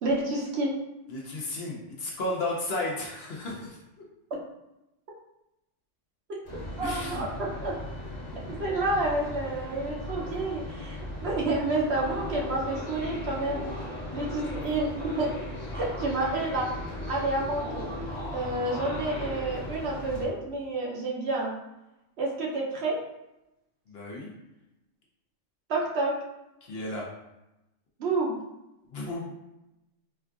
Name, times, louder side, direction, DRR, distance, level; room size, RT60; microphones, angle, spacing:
voice 1, 0.0-0.7 6.8-7.7 8.6-13.6 14.1-15.3 15.7-16.7 17.1-17.9 18.3-21.5 22.2-23.0 25.7-26.1 28.0-28.3, right 2 dB, 65° right, -3 dB, 0.8 m, -29 dB
voice 2, 1.1-3.8 6.8-7.2 23.9-24.3 26.6-27.1 28.9-29.2, left 2 dB, 60° left, -3 dB, 0.8 m, -33 dB
sound 1, 6.4-20.3, left 1 dB, 35° left, 1.1 m, -37 dB
4.4 x 2.4 x 2.3 m, 0.93 s
omnidirectional pair, 1.3 m